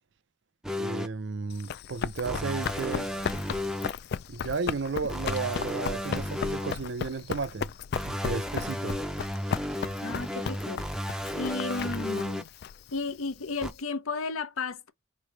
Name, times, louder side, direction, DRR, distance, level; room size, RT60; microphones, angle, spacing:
sound 1, 0.6-1.1 2.3-3.9 5.1-6.7 7.9-12.4 13.6-13.7, left 1 dB, ahead, 0.5 m, -33 dB
voice 1, 0.7-3.1 4.3-7.7 8.0-9.0, right 4 dB, 55° right, 0.5 m, -33 dB
Run, 1.5-13.8, left 6 dB, 50° left, 0.3 m, -36 dB
voice 2, 10.0-10.8 11.3-12.5 12.9-14.9, left 4 dB, 80° left, 0.7 m, -33 dB
4.8 x 3.1 x 3.3 m
head